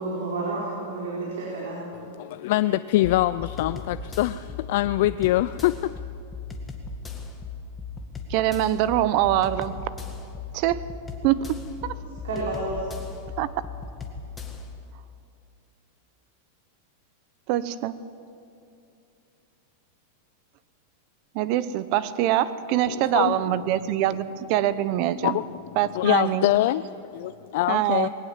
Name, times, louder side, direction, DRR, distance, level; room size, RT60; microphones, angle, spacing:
voice 1, 0.0-1.8 12.2-12.9, right 2 dB, 85° right, -4 dB, 4.8 m, -30 dB
voice 2, 2.2-6.0 22.9-23.6 25.2-25.6 25.9-28.1, left 15 dB, 60° left, 13 dB, 0.4 m, -24 dB
sound 1, 3.0-14.7, left 4 dB, 10° left, 1.9 m, -37 dB
voice 3, 8.3-9.8 10.5-10.8 11.2-11.5 11.8-11.9 13.4-13.5 17.5-17.9 21.3-25.4 25.8-26.5 27.7-28.1, right 13 dB, 45° right, 15 dB, 0.8 m, -24 dB
20.5 x 18.5 x 7.4 m, 2.6 s
supercardioid pair, 155°, 0 cm